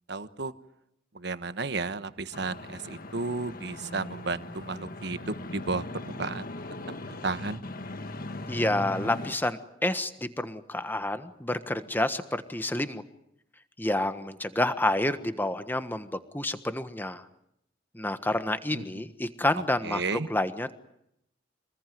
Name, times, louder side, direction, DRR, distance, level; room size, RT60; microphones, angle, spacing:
voice 1, 0.1-0.5 1.1-6.5 7.2-7.6 18.7-19.0 19.8-20.3, right 3 dB, 65° right, 12 dB, 1.2 m, -33 dB
sound 1, 2.3-9.3, left 2 dB, 50° left, 1.5 m, -39 dB
voice 2, 8.5-13.0 13.8-16.1 16.3-17.2 17.9-20.7, left 1 dB, 10° left, 10 dB, 1.4 m, -29 dB
26.5 x 20.5 x 9.4 m, 0.79 s
head